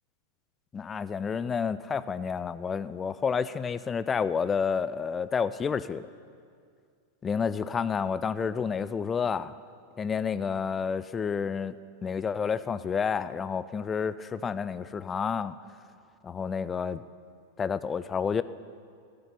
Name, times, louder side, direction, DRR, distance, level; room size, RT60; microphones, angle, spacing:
voice 1, 0.7-6.1 7.2-9.5 10.0-11.8 12.0-15.6 16.2-17.0 17.6-18.4, left 6 dB, 20° left, 15 dB, 0.4 m, -30 dB
13.0 x 6.7 x 8.8 m, 2.2 s
figure-of-eight pair, 90°, 0 cm